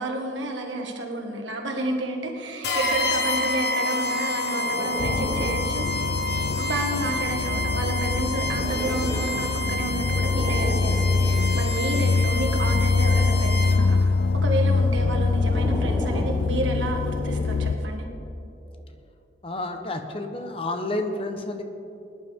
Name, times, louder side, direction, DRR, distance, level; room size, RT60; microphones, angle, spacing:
voice 1, 0.0-6.2 6.6-18.1, right 1 dB, 85° right, 2 dB, 1.8 m, -30 dB
sound 1, 2.6-14.0, left 1 dB, 60° left, 1.4 m, -29 dB
sound 2, 4.0-7.1 7.7-11.9 12.6-13.8 14.6-18.0 18.6-18.8, right 1 dB, 10° right, 1.2 m, -37 dB
sound 3, 5.0-17.8, left 3 dB, 85° left, 0.4 m, -24 dB
voice 2, 19.4-21.6, left 2 dB, 30° left, 6 dB, 1.0 m, -30 dB
20.0 x 11.0 x 3.7 m, 2.8 s
head